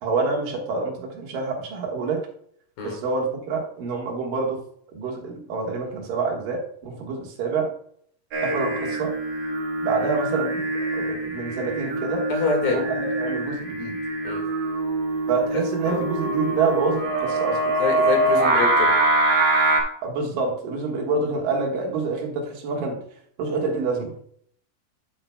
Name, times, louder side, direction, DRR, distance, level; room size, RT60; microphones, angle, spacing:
voice 1, 0.0-2.3 2.8-4.6 4.9-7.7 8.4-9.1 9.8-10.7 10.9-12.2 12.7-14.0 15.3-17.6 20.0-23.0 23.4-24.1, right 4 dB, 70° right, 0 dB, 3.0 m, -27 dB
Singing, 8.3-19.8, right 2 dB, 55° right, 2.3 m, -24 dB
voice 2, 12.3-12.8 14.3-14.4 15.9-16.0 17.8-18.9, left 5 dB, 75° left, 1 dB, 3.6 m, -25 dB
9.6 x 8.7 x 2.2 m, 0.63 s
omnidirectional pair, 4.2 m